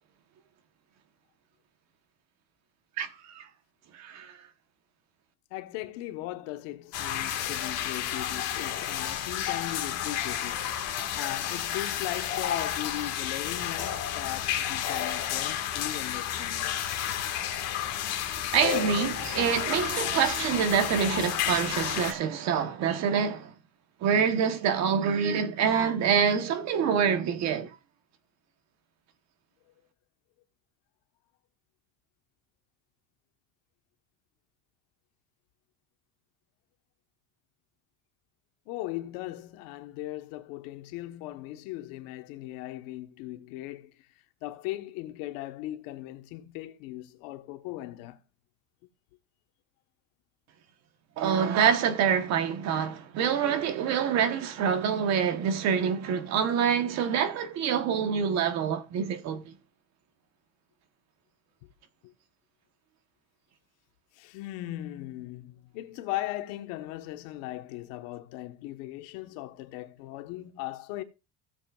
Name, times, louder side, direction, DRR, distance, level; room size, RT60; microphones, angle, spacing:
voice 1, 3.9-4.4 17.5-17.6 18.5-23.5 24.0-27.7 51.2-59.4, right 7 dB, 40° right, 1.2 m, -26 dB
voice 2, 5.5-16.7 38.7-44.1 44.4-48.2 62.0-62.1 64.1-71.0, left 15 dB, 75° left, 1.3 m, -38 dB
sound 1, 6.9-22.1, left 10 dB, 40° left, 1.8 m, -31 dB
16.5 x 7.5 x 2.4 m
cardioid pair, 180°, 41 cm